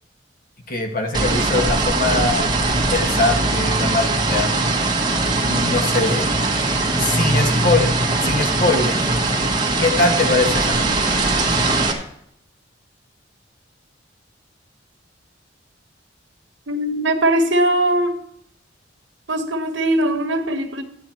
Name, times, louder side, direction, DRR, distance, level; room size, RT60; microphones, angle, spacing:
voice 1, 0.7-4.5 5.4-6.3 7.0-7.9 8.2-9.0 9.8-11.0, left 3 dB, 50° left, 3 dB, 1.6 m, -22 dB
sound 1, 1.1-11.9, right 2 dB, 25° right, 1.5 m, -20 dB
voice 2, 16.7-18.2 19.3-20.8, right 1 dB, 75° right, 5 dB, 1.5 m, -20 dB
13.0 x 9.3 x 4.5 m, 0.73 s
head